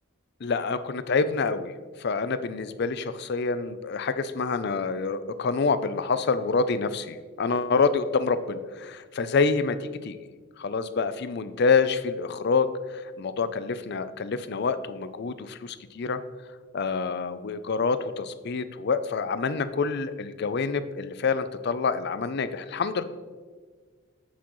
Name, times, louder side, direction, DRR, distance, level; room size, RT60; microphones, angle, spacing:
voice 1, 0.4-10.2 10.6-16.2 16.7-23.0, left 4 dB, 50° left, 13 dB, 0.4 m, -27 dB
8.3 x 8.2 x 3.1 m, 1.5 s
head